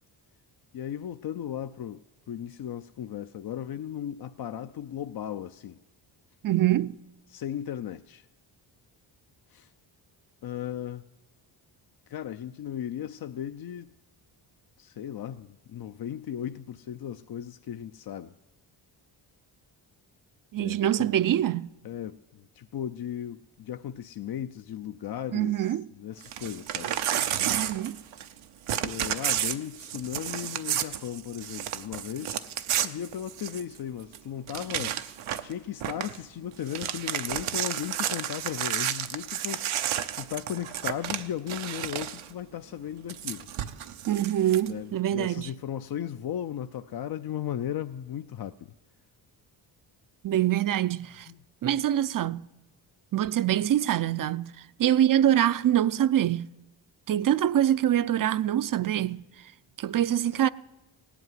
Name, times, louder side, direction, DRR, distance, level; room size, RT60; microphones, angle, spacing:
voice 1, 0.7-5.8 7.3-8.3 9.5-9.7 10.4-11.0 12.1-13.9 14.8-18.3 20.6-21.1 21.8-27.0 28.8-32.5 32.8-35.0 35.4-39.7 40.2-43.5 44.7-48.7, left 10 dB, 50° left, 0.5 m, -36 dB
voice 2, 6.4-7.0 20.5-21.7 25.3-25.9 27.6-28.0 44.1-45.5 50.2-51.3 51.6-52.5 53.1-56.5 57.1-59.3 59.8-60.5, right 11 dB, 45° right, 0.5 m, -25 dB
Crumpling crinkling / Tearing, 26.2-28.4 28.7-33.8 34.1-34.2 34.5-35.5 35.8-36.2 36.5-42.3 43.1-44.7, right 10 dB, 90° right, 0.8 m, -31 dB
17.0 x 8.3 x 9.3 m
cardioid pair, 65°, 48 cm